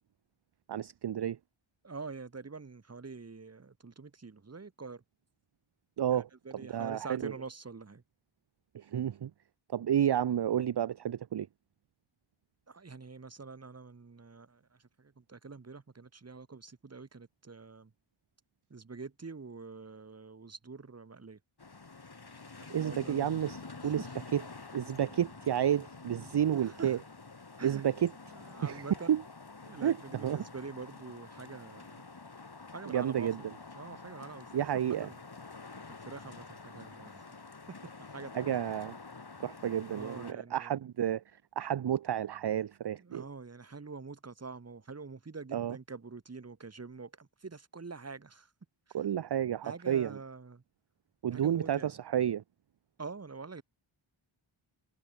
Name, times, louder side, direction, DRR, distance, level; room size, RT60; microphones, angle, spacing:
voice 1, 0.7-1.4 6.0-6.2 6.7-7.3 8.7-9.3 9.7-11.5 22.7-24.1 24.3-24.4 24.7-27.0 27.6-28.1 28.6-28.8 29.1-29.2 29.8-30.4 32.9-33.4 34.5-35.1 38.3-38.9 39.4-43.3 45.5-45.8 48.9-50.2 51.2-52.4, right 10 dB, 55° right, 0.6 m, -31 dB
voice 2, 1.8-5.0 6.1-8.0 12.7-17.9 18.7-21.4 22.6-23.2 23.8-24.1 26.1-27.0 27.6-27.8 28.3-29.2 29.6-32.0 32.7-33.3 33.8-35.2 35.9-37.3 37.8-38.4 39.9-40.9 43.0-48.5 49.6-50.6 51.3-51.9 53.0-53.6, right 4 dB, 30° right, 1.3 m, -46 dB
sound 1, 21.6-40.3, left 4 dB, 50° left, 5.8 m, -48 dB
wide cardioid pair, 95°, 49 cm